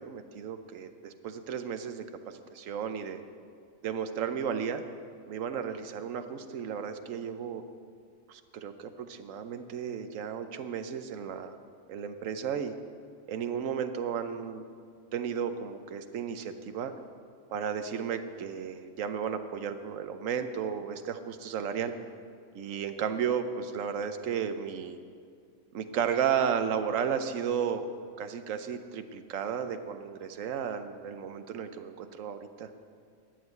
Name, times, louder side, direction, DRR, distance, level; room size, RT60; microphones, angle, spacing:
voice 1, 0.0-3.2 3.8-4.8 5.3-7.6 8.3-11.6 11.9-12.7 13.3-14.6 15.1-16.9 17.5-21.9 22.5-25.0 25.7-27.9 28.2-32.7, right 7 dB, 70° right, 9 dB, 1.1 m, -33 dB
11.5 x 7.6 x 9.3 m, 2.2 s
omnidirectional pair, 1.4 m